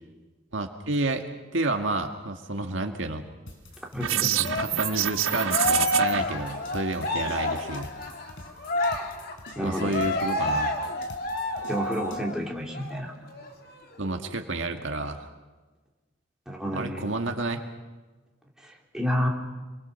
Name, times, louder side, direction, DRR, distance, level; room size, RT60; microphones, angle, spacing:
voice 1, 0.5-1.2 1.5-3.2 4.4-7.9 9.6-10.7 14.0-15.3 16.7-17.6, right 2 dB, 70° right, 4 dB, 1.9 m, -30 dB
sound 1, 3.5-12.2, left 1 dB, 75° left, 4.5 m, -47 dB
voice 2, 3.8-4.4 7.2-7.4 9.6-10.0 11.7-13.1 16.5-17.1 18.6-19.3, equal, 5° right, -2 dB, 3.6 m, -30 dB
sound 2, 4.0-6.2, right 12 dB, 85° right, 0.8 m, -26 dB
Cheering, 4.4-12.4 12.7-12.9 13.3-14.3, left 1 dB, 50° left, 2.7 m, -29 dB
29.0 x 23.5 x 7.0 m, 1.3 s
head